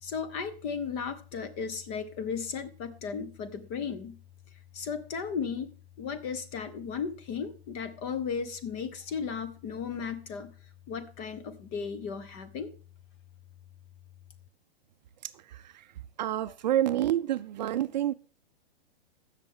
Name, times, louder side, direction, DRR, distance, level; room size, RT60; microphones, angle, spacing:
voice 1, 0.0-4.2 4.7-5.7 6.0-10.5 10.9-12.7, left 6 dB, 25° left, 0.8 m, -35 dB
voice 2, 15.2-15.9 16.2-18.1, right 12 dB, 45° right, 0.5 m, -29 dB
15.5 x 6.5 x 3.7 m
hypercardioid pair, 160°, 30 cm